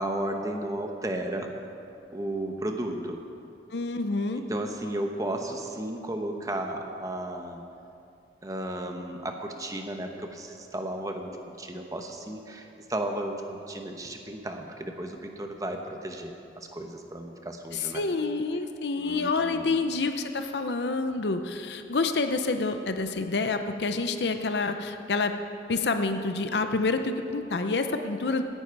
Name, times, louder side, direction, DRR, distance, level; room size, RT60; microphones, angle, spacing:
voice 1, 0.0-1.5 2.1-3.2 4.4-7.6 8.4-18.0 19.0-19.8, right 1 dB, 20° right, 4 dB, 0.9 m, -34 dB
voice 2, 3.7-4.4 17.7-25.3 25.7-28.4, left 3 dB, 75° left, 8 dB, 0.6 m, -28 dB
16.5 x 9.9 x 4.7 m, 2.7 s
head